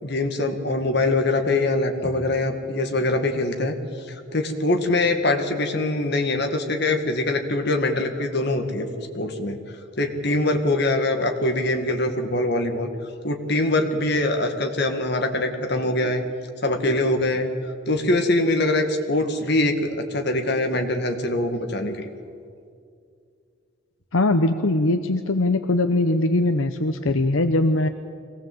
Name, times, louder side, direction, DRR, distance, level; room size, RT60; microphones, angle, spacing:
voice 1, 0.0-3.8 4.1-9.6 10.0-12.9 13.2-16.3 16.6-17.5 17.9-22.1, left 2 dB, 55° left, 5 dB, 1.9 m, -23 dB
voice 2, 24.1-27.9, left 2 dB, 80° left, 8 dB, 0.9 m, -21 dB
23.0 x 18.0 x 7.9 m, 2.3 s
head